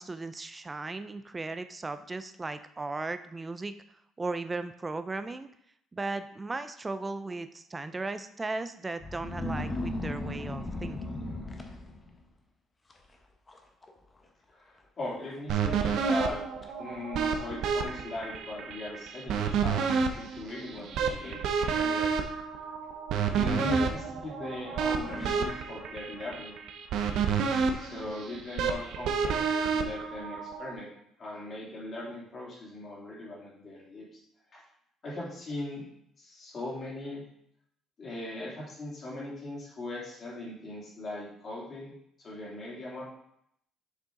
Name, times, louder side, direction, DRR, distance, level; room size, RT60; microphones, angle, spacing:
voice 1, 0.0-3.7 4.2-5.5 5.9-11.0, right 3 dB, 20° right, 10 dB, 0.4 m, -36 dB
sound 1, 9.0-12.3 12.9-13.2 13.5-13.9 14.2-14.3 15.0-15.1 15.7-15.8 16.3-16.7 17.5-17.6 20.5-21.5 23.5-24.6 25.1-25.8, left 2 dB, 20° left, 0.9 m, -37 dB
voice 2, 14.5-16.4 16.8-19.8 20.1-22.2 23.3-26.6 27.8-29.4 29.7-30.9 31.2-34.1 34.5-34.6 35.0-35.8 36.2-37.2 38.0-43.1, left 2 dB, 40° left, -5 dB, 2.7 m, -39 dB
sound 2, 15.5-30.7, right 6 dB, 70° right, 0.7 m, -30 dB
6.9 x 4.9 x 3.8 m, 0.73 s
cardioid pair, 120°, 0 cm